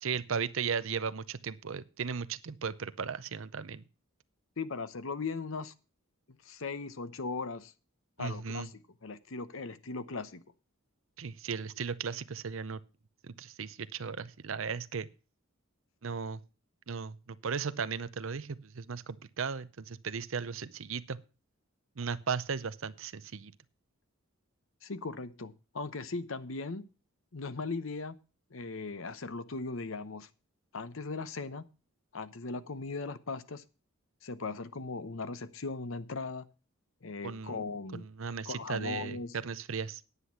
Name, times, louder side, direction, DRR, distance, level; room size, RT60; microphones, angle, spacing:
voice 1, 0.0-3.8 8.2-8.7 11.2-12.8 13.2-15.1 16.0-16.4 16.9-21.2 22.0-23.5 37.2-37.6 37.9-40.0, right 6 dB, 65° right, 15 dB, 0.6 m, -36 dB
voice 2, 4.6-5.7 6.4-7.7 8.2-8.7 9.0-10.4 24.8-26.8 27.3-28.2 28.5-30.3 30.7-31.6 32.1-33.6 34.2-36.5 37.0-38.0 38.5-39.4, left 4 dB, 70° left, 13 dB, 0.8 m, -38 dB
9.8 x 8.2 x 5.8 m, 0.33 s
head